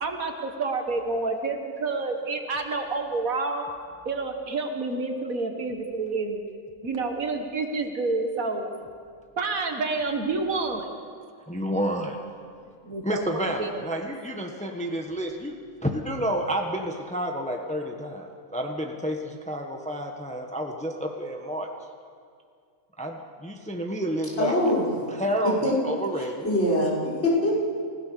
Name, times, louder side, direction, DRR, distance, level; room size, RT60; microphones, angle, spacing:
voice 1, 0.0-3.7 4.1-6.4 6.8-8.7 9.4-10.9 12.8-13.8, right 3 dB, 85° right, 4 dB, 2.0 m, -29 dB
voice 2, 11.5-12.2 13.0-15.5 15.8-21.7 23.0-24.5 25.1-25.5 25.8-26.5, equal, 5° left, 2 dB, 1.4 m, -30 dB
voice 3, 24.4-24.9 25.4-25.7 26.2-26.9 27.2-27.6, left 1 dB, 50° left, -5 dB, 6.5 m, -23 dB
30.0 x 16.5 x 7.0 m, 2.2 s
omnidirectional pair, 1.4 m